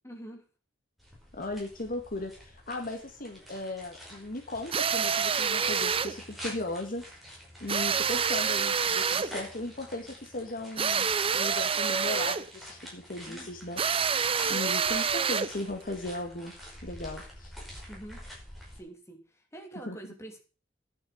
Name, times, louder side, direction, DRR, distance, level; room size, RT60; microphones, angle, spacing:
voice 1, 0.0-0.5 13.3-13.5 14.4-14.7 17.9-18.3 18.7-20.4, right 1 dB, 15° left, 2 dB, 3.2 m, -46 dB
sound 1, 1.0-18.8, equal, ahead, 5.5 m, -47 dB
voice 2, 1.4-7.0 7.6-13.8 14.5-17.5 19.9-20.0, left 2 dB, 50° left, 4 dB, 1.9 m, -37 dB
sound 2, 4.7-6.2 7.7-9.4 10.8-12.5 13.8-15.6, right 6 dB, 30° right, 0.6 m, -27 dB
11.0 x 7.4 x 7.8 m, 0.35 s
head